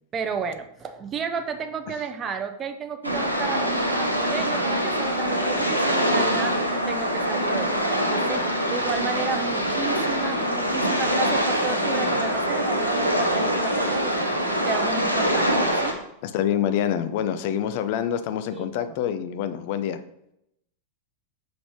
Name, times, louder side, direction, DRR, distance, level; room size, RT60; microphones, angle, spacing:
voice 1, 0.1-6.6 6.9-8.4 8.7-14.4 14.6-16.0 18.5-19.0, right 5 dB, 25° right, 8 dB, 0.6 m, -32 dB
sound 1, 3.0-15.9, equal, 85° right, 0.9 m, -24 dB
voice 2, 16.2-20.0, left 9 dB, 50° left, 11 dB, 0.5 m, -26 dB
6.1 x 5.1 x 3.1 m, 0.79 s
figure-of-eight pair, 90°, 0 cm